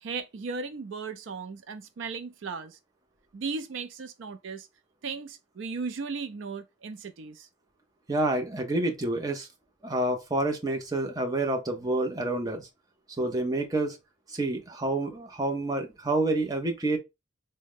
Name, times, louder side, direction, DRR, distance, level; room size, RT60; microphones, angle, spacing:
voice 1, 0.0-2.8 3.3-4.7 5.0-7.5, right 4 dB, 65° right, 0.4 m, -36 dB
voice 2, 8.1-9.5 9.8-12.7 13.2-14.0 14.3-17.0, right 2 dB, 20° right, 0.6 m, -28 dB
3.6 x 2.1 x 3.5 m
head